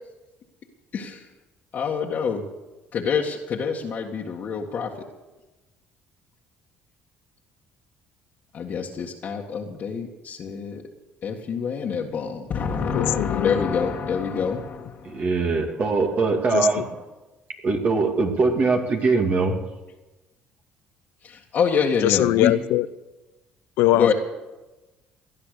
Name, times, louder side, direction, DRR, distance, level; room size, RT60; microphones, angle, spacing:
voice 1, 0.9-1.2 1.7-2.4 2.9-4.9 8.5-10.8 11.2-15.3 21.2-22.5 23.9-24.1, left 6 dB, 50° left, -3 dB, 1.8 m, -26 dB
voice 2, 12.9-13.6 16.5-16.7 22.0-22.9 23.8-24.1, left 16 dB, 80° left, 16 dB, 0.6 m, -21 dB
voice 3, 15.1-16.9 17.6-19.5, right 3 dB, 45° right, 2 dB, 2.4 m, -22 dB
18.5 x 11.0 x 6.7 m, 1.1 s
cardioid pair, 95°, 4 cm